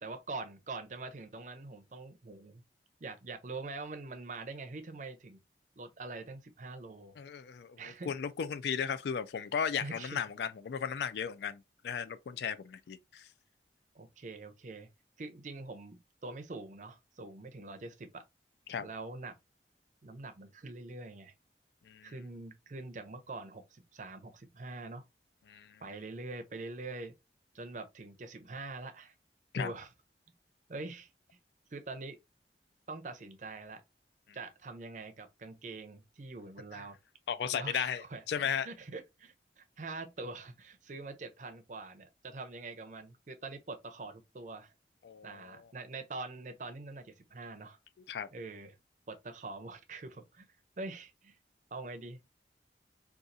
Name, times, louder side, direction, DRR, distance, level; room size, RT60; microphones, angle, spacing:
voice 1, 0.0-2.6 3.0-5.4 5.8-7.2 7.8-8.1 9.8-10.2 13.9-14.9 15.2-18.2 18.8-19.3 20.0-21.3 22.0-25.0 25.8-27.1 27.5-29.1 29.5-29.9 30.7-31.1 31.7-32.2 32.9-33.8 34.3-37.0 37.5-44.7 45.2-47.8 48.3-48.8 49.1-50.5 50.8-51.4 51.7-52.2, right 3 dB, 45° right, 0.5 m, -44 dB
voice 2, 7.2-13.3 18.7-18.8 21.9-22.1 25.5-25.8 29.5-29.7 36.7-36.8 37.3-38.7 45.0-45.7 48.1-48.3, left 7 dB, 75° left, 0.3 m, -36 dB
4.0 x 2.4 x 2.5 m
head